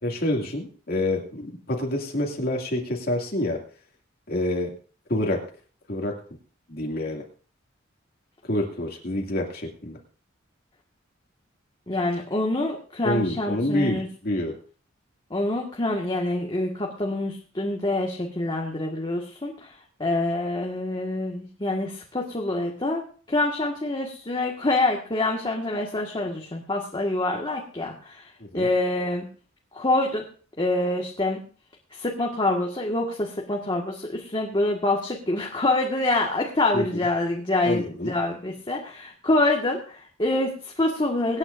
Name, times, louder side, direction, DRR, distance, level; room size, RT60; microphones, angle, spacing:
voice 1, 0.0-3.6 4.3-4.7 5.1-5.4 5.9-6.1 6.7-7.2 8.4-10.0 13.0-14.6 28.5-28.7 36.7-36.9 37.6-38.1, left 1 dB, 50° left, 0 dB, 2.3 m, -27 dB
voice 2, 11.9-14.1 15.3-19.7 20.0-28.3 28.5-29.3 29.7-30.2 30.6-31.4 31.9-41.4, left 2 dB, 25° left, -1 dB, 1.6 m, -26 dB
24.0 x 9.7 x 2.6 m, 0.41 s
head